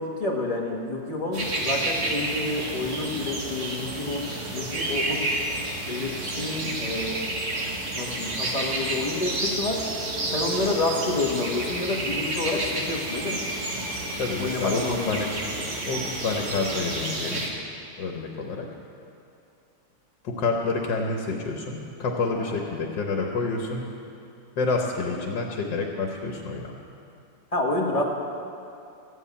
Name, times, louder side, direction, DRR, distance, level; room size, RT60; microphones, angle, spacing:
voice 1, 0.0-5.3 5.8-7.2 7.9-9.8 10.3-13.4 14.4-15.3 22.3-22.5 27.5-28.0, left 2 dB, 20° left, -1 dB, 1.5 m, -29 dB
sound 1, 1.3-17.5, right 2 dB, 45° right, 1.8 m, -30 dB
voice 2, 14.2-15.3 15.8-17.5 18.0-18.7 20.2-23.9 24.6-26.7, left 4 dB, 80° left, 1 dB, 1.8 m, -28 dB
14.0 x 8.1 x 8.4 m, 2.6 s
omnidirectional pair, 1.9 m